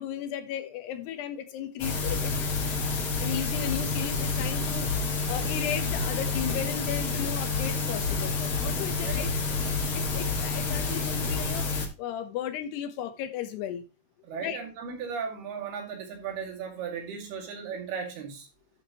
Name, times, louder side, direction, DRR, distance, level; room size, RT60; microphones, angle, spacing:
voice 1, 0.0-2.6 3.2-9.3 9.9-11.7 12.0-13.8 14.4-14.6, left 10 dB, 85° left, 9 dB, 3.3 m, -35 dB
sound 1, 1.8-11.9, left 4 dB, 45° left, 1.9 m, -29 dB
voice 2, 14.3-18.5, right 6 dB, 70° right, 3 dB, 4.2 m, -36 dB
11.5 x 7.4 x 3.0 m, 0.27 s
omnidirectional pair, 4.7 m